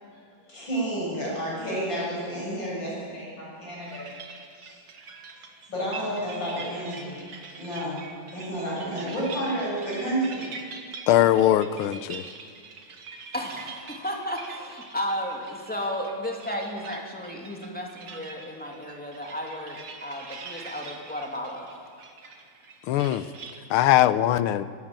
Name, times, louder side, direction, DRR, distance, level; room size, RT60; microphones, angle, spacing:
voice 1, 0.5-5.4 5.7-10.7, right 1 dB, 60° left, -5 dB, 8.3 m, -31 dB
sound 1, 3.8-23.7, right 4 dB, 90° right, 2.7 m, -44 dB
voice 2, 11.1-12.2 22.9-23.3 23.7-24.6, left 12 dB, 90° left, 15 dB, 1.6 m, -21 dB
voice 3, 13.3-21.7, equal, 5° left, 0 dB, 2.7 m, -33 dB
24.5 x 13.0 x 8.9 m, 2.3 s
omnidirectional pair, 2.3 m